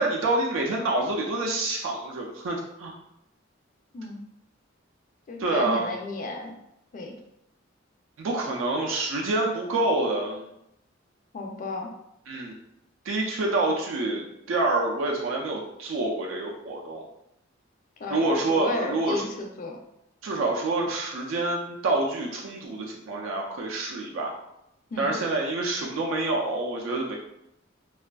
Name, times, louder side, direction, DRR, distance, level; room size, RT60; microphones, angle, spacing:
voice 1, 0.0-2.9 5.4-5.9 8.2-10.4 12.3-12.5 13.0-17.0 18.1-19.3 20.2-24.4 25.0-27.2, right 2 dB, 75° right, -1 dB, 0.4 m, -27 dB
voice 2, 5.3-6.5 6.9-7.2 11.3-11.9 18.0-19.8 24.9-25.2, left 2 dB, 45° left, 2 dB, 0.4 m, -34 dB
2.5 x 2.3 x 2.2 m, 0.82 s
head